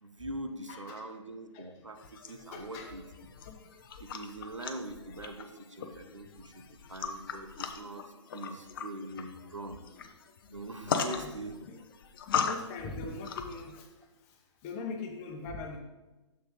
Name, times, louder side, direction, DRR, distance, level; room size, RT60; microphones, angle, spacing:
voice 1, 0.0-3.0 4.0-8.0 8.3-9.8 10.5-11.7, right 1 dB, 90° right, 7 dB, 0.7 m, -43 dB
voice 2, 0.7-1.0 1.5-1.7 2.5-2.9 8.4-8.5 10.9-11.3 11.6-11.8 12.3-13.9 14.6-15.8, left 3 dB, 30° left, 2 dB, 1.1 m, -41 dB
sound 1, 2.0-13.8, left 6 dB, 50° left, 0.6 m, -39 dB
6.8 x 6.3 x 3.2 m, 1.1 s
figure-of-eight pair, 125°, 15 cm